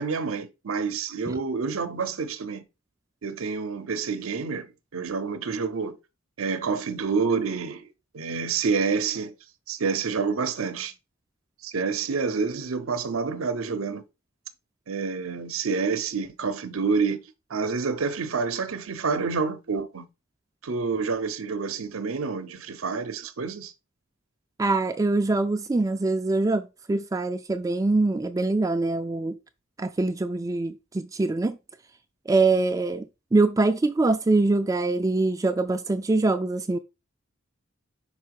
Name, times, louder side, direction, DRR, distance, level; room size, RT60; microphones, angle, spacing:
voice 1, 0.0-2.6 3.2-6.0 6.4-7.9 8.1-9.3 9.7-10.9 11.6-14.0 14.9-17.2 17.5-20.1 20.6-23.7, right 5 dB, 85° right, 0.7 m, -28 dB
voice 2, 24.6-29.4 29.8-31.6 32.3-33.1 33.3-36.8, right 3 dB, 15° right, 0.3 m, -24 dB
5.5 x 4.4 x 4.6 m
head